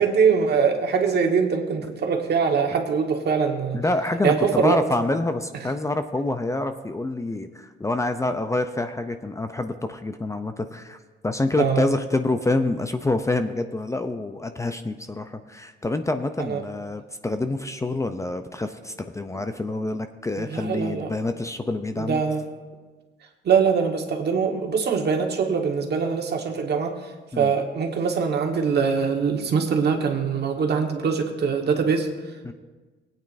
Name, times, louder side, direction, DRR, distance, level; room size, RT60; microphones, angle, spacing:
voice 1, 0.0-3.8 4.2-4.8 11.6-11.9 16.5-16.6 20.4-21.1 22.0-22.4 23.4-26.9 27.4-32.1, right 6 dB, 55° right, 3 dB, 1.4 m, -23 dB
voice 2, 3.7-11.0 11.2-22.2 27.3-27.5 32.4-32.5, left 2 dB, 15° left, 8 dB, 0.5 m, -27 dB
18.0 x 9.1 x 2.6 m, 1.3 s
cardioid pair, 90°, 20 cm